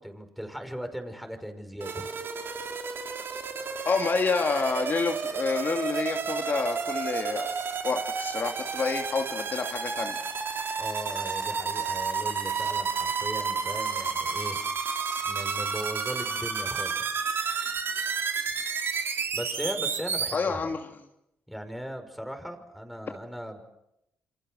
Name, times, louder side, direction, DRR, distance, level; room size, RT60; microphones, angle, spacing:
voice 1, 0.0-2.1 10.8-14.6 15.2-17.2 19.3-20.7 21.5-23.6, equal, ahead, 7 dB, 5.8 m, -38 dB
sound 1, 1.8-20.4, right 5 dB, 55° right, 4.0 m, -31 dB
voice 2, 3.8-7.5 7.8-10.1 20.3-20.8, left 4 dB, 45° left, 3 dB, 2.8 m, -28 dB
28.5 x 27.0 x 6.6 m, 0.84 s
cardioid pair, 90°, 5 cm